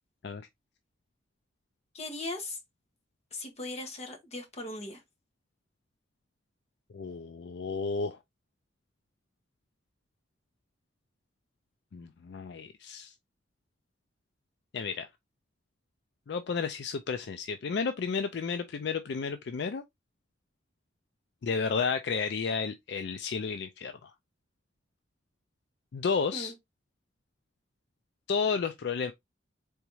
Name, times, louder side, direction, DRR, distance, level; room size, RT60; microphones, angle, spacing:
voice 1, 1.9-2.6 3.3-5.0 26.3-26.5, left 2 dB, 35° left, 1.3 m, -38 dB
voice 2, 6.9-8.2 11.9-13.1 14.7-15.1 16.3-19.8 21.4-24.1 25.9-26.5 28.3-29.1, left 5 dB, 65° left, 0.4 m, -32 dB
4.0 x 3.5 x 3.1 m
head